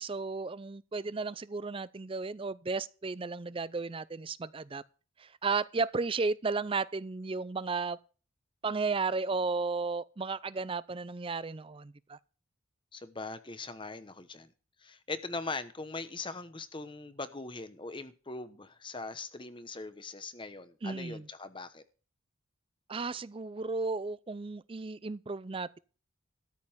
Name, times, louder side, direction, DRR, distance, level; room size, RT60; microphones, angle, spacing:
voice 1, 0.0-4.8 5.2-8.0 8.6-12.2 20.8-21.3 22.9-25.8, right 4 dB, 25° right, 0.5 m, -34 dB
voice 2, 12.9-14.5 14.8-21.8, left 3 dB, 25° left, 0.9 m, -41 dB
13.5 x 5.4 x 7.9 m
head